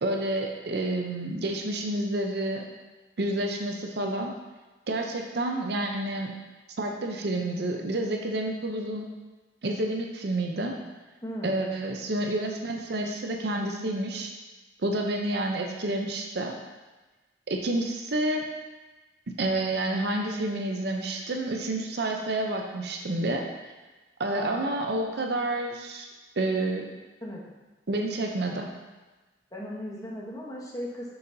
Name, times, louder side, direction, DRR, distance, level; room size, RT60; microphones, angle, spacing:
voice 1, 0.0-2.6 3.2-4.3 4.9-6.3 6.8-9.1 9.6-10.8 11.4-14.3 14.8-16.5 17.5-18.4 19.4-23.4 24.2-26.1 26.4-26.9 27.9-28.7, right 1 dB, 60° right, 2 dB, 0.6 m, -29 dB
voice 2, 11.2-11.6 24.3-25.0 27.2-27.4 29.5-31.1, equal, 20° left, -4 dB, 1.0 m, -37 dB
6.6 x 5.6 x 2.7 m, 1.2 s
head